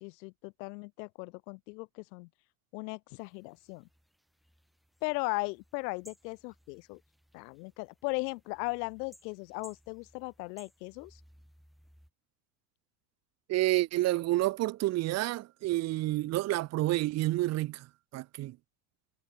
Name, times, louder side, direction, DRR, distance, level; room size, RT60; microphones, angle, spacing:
voice 1, 0.0-2.3 2.7-3.9 5.0-7.0 7.3-11.2, left 28 dB, 90° left, 1.0 m, -37 dB
sound 1, 3.2-12.1, equal, ahead, 7.2 m, -62 dB
voice 2, 13.5-17.9 18.1-18.6, right 17 dB, 30° right, 1.1 m, -29 dB
cardioid pair, 180°, 48 cm